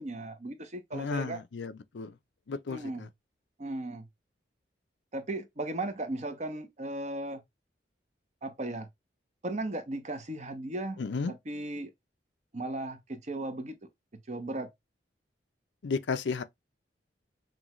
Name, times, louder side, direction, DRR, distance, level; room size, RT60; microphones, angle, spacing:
voice 1, 0.0-1.4 2.7-3.1 3.6-4.1 5.1-7.4 8.4-8.9 9.4-11.0 11.3-11.9 12.5-13.8 14.3-14.7, right 2 dB, 40° right, 0.8 m, -36 dB
voice 2, 0.9-2.1 2.5-3.1 11.0-11.3 15.8-16.4, left 4 dB, 80° left, 0.5 m, -33 dB
6.2 x 2.3 x 3.0 m
head